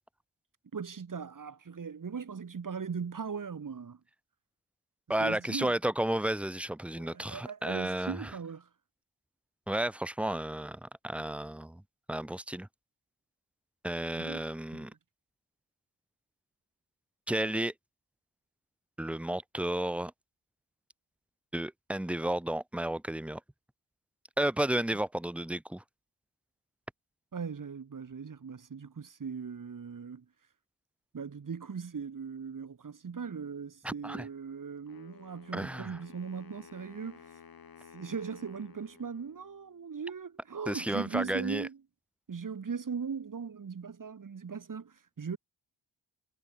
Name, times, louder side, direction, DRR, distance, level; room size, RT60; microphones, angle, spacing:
voice 1, 0.7-4.0 5.2-5.8 7.0-8.7 14.1-14.4 14.7-14.9 27.3-30.3 31.1-37.2 37.9-41.8 42.3-45.4, right 6 dB, 45° right, 4.4 m, -39 dB
voice 2, 5.1-8.2 9.7-11.8 12.1-12.7 13.8-14.9 17.3-17.7 19.0-20.1 21.5-23.4 24.4-25.8 33.8-34.3 35.5-36.0 40.7-41.7, right 1 dB, 5° right, 0.5 m, -32 dB
Wind instrument woodwind instrument, 34.9-39.9, left 6 dB, 50° left, 3.9 m, -54 dB
wide cardioid pair, 160°, 45 cm